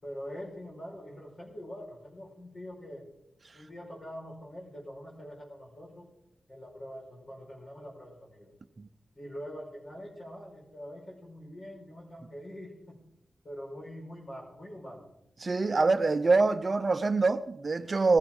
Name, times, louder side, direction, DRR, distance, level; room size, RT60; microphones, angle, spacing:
voice 1, 0.0-3.1 3.5-6.1 6.5-8.5 9.1-13.0 13.4-15.1, equal, 50° left, 5.0 m, -44 dB
voice 2, 15.4-18.2, right 3 dB, 40° right, 0.5 m, -25 dB
18.0 x 15.0 x 3.8 m
wide cardioid pair, 100°, 0 cm